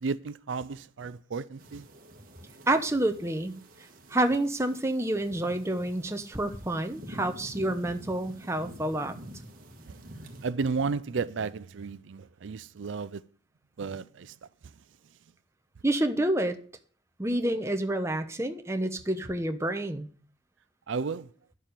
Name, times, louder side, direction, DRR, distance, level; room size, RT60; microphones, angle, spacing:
voice 1, 0.0-1.8 10.4-13.2 13.8-14.3 20.9-21.3, right 4 dB, 75° right, 0.5 m, -33 dB
sound 1, 1.6-10.5, right 1 dB, 45° right, 1.6 m, -47 dB
voice 2, 2.7-3.5 4.1-9.1 15.8-16.6 17.2-20.1, right 1 dB, 15° right, 0.9 m, -28 dB
10.5 x 7.4 x 6.7 m
head